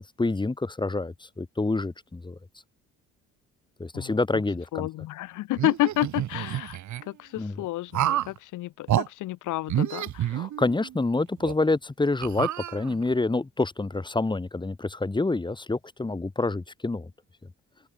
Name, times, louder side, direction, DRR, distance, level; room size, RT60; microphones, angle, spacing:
voice 1, 0.0-2.4 3.8-4.9 7.4-7.6 10.3-17.1, left 3 dB, 15° left, 1.5 m, -27 dB
voice 2, 4.7-6.8 7.1-10.4, left 16 dB, 90° left, 2.1 m, -30 dB
sound 1, 5.5-7.0 7.9-8.4 8.9-9.1 9.7-10.9 11.4-11.5 12.2-13.1, right 12 dB, 70° right, 2.0 m, -28 dB
open air
cardioid pair, 90°, 30 cm